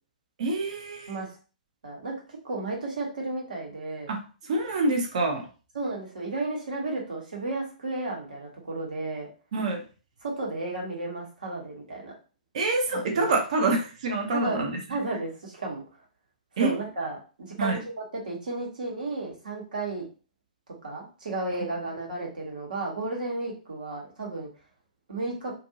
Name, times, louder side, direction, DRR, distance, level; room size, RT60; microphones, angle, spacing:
voice 1, 0.4-1.1 4.1-5.5 9.5-9.8 12.5-14.8 16.6-16.7 17.6-17.8, right 2 dB, 50° right, 3 dB, 0.8 m, -26 dB
voice 2, 1.8-4.1 5.7-9.3 10.2-12.1 12.9-13.3 14.3-14.6 14.9-15.8 16.6-20.0 20.8-24.5 25.1-25.5, right 2 dB, 65° right, -1 dB, 1.2 m, -33 dB
2.6 x 2.5 x 2.8 m, 0.36 s
figure-of-eight pair, 120°, 5 cm